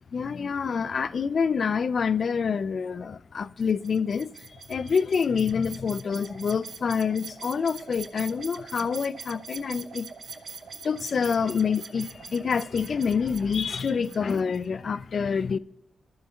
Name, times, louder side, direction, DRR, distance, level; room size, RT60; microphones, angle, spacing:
voice 1, 0.1-10.1 10.8-15.6, left 6 dB, 55° left, 0.4 m, -27 dB
sound 1, 3.6-14.6, right 5 dB, 55° right, 0.8 m, -43 dB
12.5 x 4.6 x 4.4 m
wide cardioid pair, 120°, 0 cm